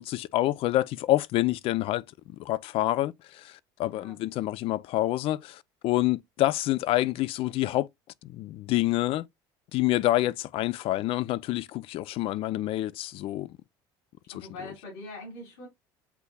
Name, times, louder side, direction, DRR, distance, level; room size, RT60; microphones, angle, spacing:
voice 1, 0.0-2.0 2.4-7.9 8.2-9.3 9.7-13.6, left 15 dB, 60° left, 0.4 m, -27 dB
voice 2, 14.3-15.7, left 2 dB, 85° left, 3.3 m, -43 dB
8.1 x 2.8 x 2.3 m
supercardioid pair, 95°, 11 cm